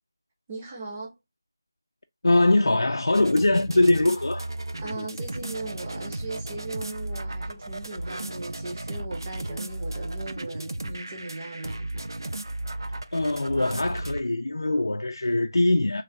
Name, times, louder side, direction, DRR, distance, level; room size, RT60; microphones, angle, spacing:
voice 1, 0.5-1.1 4.8-11.8, right 2 dB, 5° right, 0.3 m, -38 dB
voice 2, 2.2-4.5 13.1-16.0, left 2 dB, 85° left, 0.4 m, -22 dB
sound 1, 3.1-14.2, right 1 dB, 80° right, 0.4 m, -35 dB
3.2 x 2.4 x 3.8 m
figure-of-eight pair, 180°, 2 cm